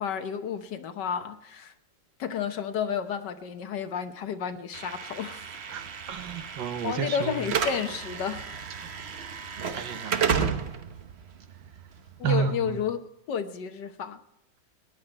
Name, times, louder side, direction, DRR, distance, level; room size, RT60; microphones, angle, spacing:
voice 1, 0.0-1.7 2.2-5.4 6.8-8.6 12.2-13.0 13.3-14.2, left 7 dB, 70° left, 1.5 m, -31 dB
Slam / Alarm, 4.7-12.8, right 6 dB, 45° right, 0.9 m, -33 dB
voice 2, 5.7-7.4 8.8-8.9 9.7-10.7 12.2-12.8, right 7 dB, 75° right, 1.7 m, -31 dB
18.5 x 11.0 x 4.4 m
omnidirectional pair, 2.0 m